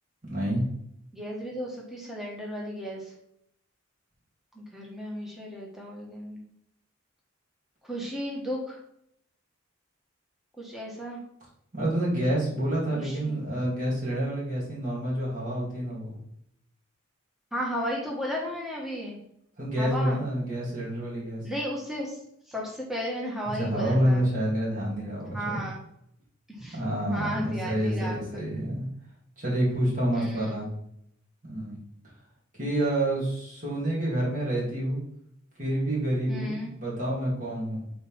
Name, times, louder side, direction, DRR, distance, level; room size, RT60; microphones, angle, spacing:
voice 1, 0.2-0.6 11.7-16.1 19.6-21.4 23.6-25.6 26.7-28.8 29.4-30.7 31.4-31.8 32.6-35.0 35.6-37.8, right 1 dB, 40° right, -6 dB, 3.1 m, -28 dB
voice 2, 1.1-3.0 4.5-6.4 7.8-8.8 10.6-11.2 12.9-13.5 17.5-19.2 19.8-20.2 21.4-22.2 22.5-24.2 25.3-25.8 26.6-28.4 30.1-30.6 36.3-36.7, equal, ahead, -3 dB, 1.5 m, -34 dB
6.5 x 4.3 x 5.7 m, 0.73 s
head